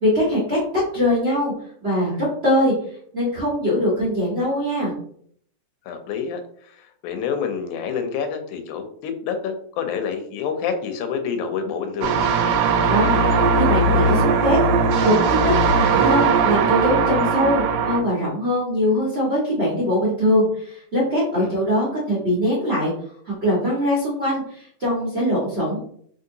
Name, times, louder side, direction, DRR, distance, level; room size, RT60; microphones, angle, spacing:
voice 1, 0.0-0.6 0.9-1.5 1.8-2.7 3.1-4.9 12.9-14.6 15.0-15.1 15.4-22.9 23.3-25.8, equal, 50° right, -8 dB, 0.7 m, -22 dB
voice 2, 5.9-12.3 21.3-21.5, left 6 dB, 85° left, 7 dB, 2.0 m, -28 dB
sound 1, 12.0-18.0, right 4 dB, 80° right, 1.9 m, -19 dB
4.0 x 3.7 x 2.7 m, 0.62 s
omnidirectional pair, 3.4 m